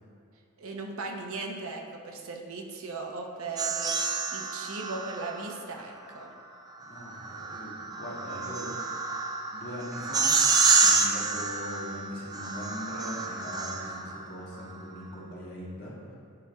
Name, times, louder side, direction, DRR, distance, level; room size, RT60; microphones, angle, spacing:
voice 1, 0.6-6.3, right 3 dB, 65° right, 1 dB, 0.7 m, -38 dB
sound 1, 3.6-5.5 7.0-14.2, right 4 dB, 15° right, 0.3 m, -28 dB
voice 2, 6.8-9.0 9.5-16.2, left 1 dB, 45° left, -6 dB, 1.5 m, -41 dB
9.8 x 4.8 x 2.3 m, 2.4 s
head